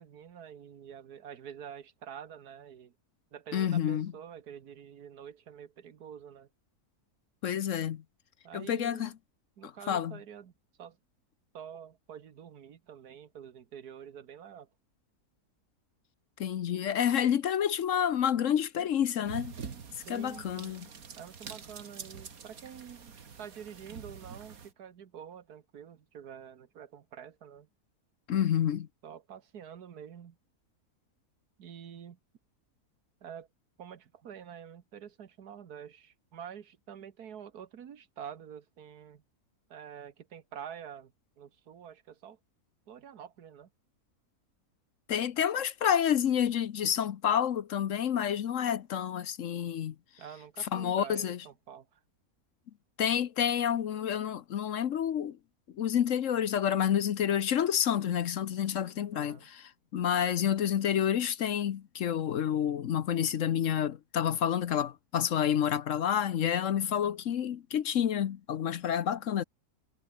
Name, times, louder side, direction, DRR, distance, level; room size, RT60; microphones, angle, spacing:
voice 1, 0.0-2.9 3.3-6.5 8.4-9.1 9.6-10.5 10.8-11.0 11.5-14.7 20.0-20.8 21.2-27.7 29.0-30.4 31.6-32.2 33.2-33.5 33.8-39.2 39.7-42.4 42.9-43.7 50.2-52.0 59.1-59.5, right 8 dB, 85° right, 1.8 m, -47 dB
voice 2, 3.5-4.1 7.4-8.0 8.5-9.1 9.6-10.2 16.4-19.5 20.1-20.9 28.3-28.9 45.1-49.9 50.6-51.4 53.0-55.4 55.7-69.4, left 9 dB, 60° left, 1.1 m, -29 dB
sound 1, 19.2-24.7, right 6 dB, 65° right, 2.3 m, -46 dB
omnidirectional pair, 1.6 m